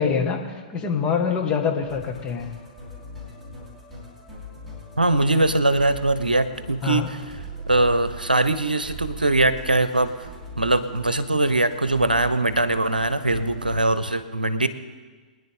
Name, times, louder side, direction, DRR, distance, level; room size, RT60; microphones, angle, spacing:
voice 1, 0.0-2.5 6.8-7.1, left 6 dB, 25° left, 1 dB, 1.8 m, -25 dB
Musical instrument, 1.8-13.8, equal, 5° left, 4.7 m, -40 dB
voice 2, 5.0-7.1 7.7-10.3 10.6-14.7, right 2 dB, 85° right, 13 dB, 0.8 m, -21 dB
24.0 x 10.5 x 3.7 m, 1.4 s
figure-of-eight pair, 110°, 5 cm